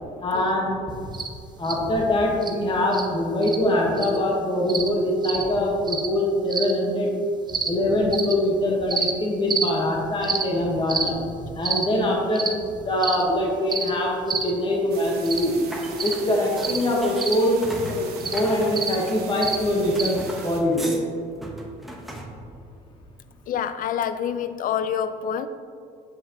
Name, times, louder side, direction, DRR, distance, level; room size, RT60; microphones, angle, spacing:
voice 1, 0.2-0.7 1.6-7.1 7.7-11.2 11.5-12.5 12.8-15.6 16.0-17.6 17.9-18.0 18.3-20.2 20.4-20.9, left 1 dB, 30° left, -2 dB, 1.3 m, -23 dB
sound 1, 1.1-1.3 1.6-1.8 2.4-2.5 2.9-3.1 3.4-3.6 4.0-4.2 4.7-4.9 5.2-5.4 5.9-6.1 6.5-6.7 7.5-7.7 8.1-8.3 8.9-9.1 9.5-9.7 10.2-10.4 10.9-11.1 11.6-11.8 12.4-12.5 13.0-13.2 13.7-13.9 14.3-14.5 15.3-15.5 16.0-16.2 16.6-16.8 17.2-17.4 18.2-18.4 18.8-19.0 19.4-19.6 20.0-20.1, right 5 dB, 25° right, 0.7 m, -27 dB
sound 2, 14.9-20.6, right 6 dB, 70° right, 1.2 m, -41 dB
sound 3, 15.7-19.5 20.0-21.0 21.4-22.3, right 1 dB, ahead, 1.0 m, -38 dB
voice 2, 23.5-25.5, left 8 dB, 55° left, 12 dB, 0.5 m, -27 dB
7.8 x 7.4 x 3.0 m, 2.4 s
cardioid pair, 110°, 17 cm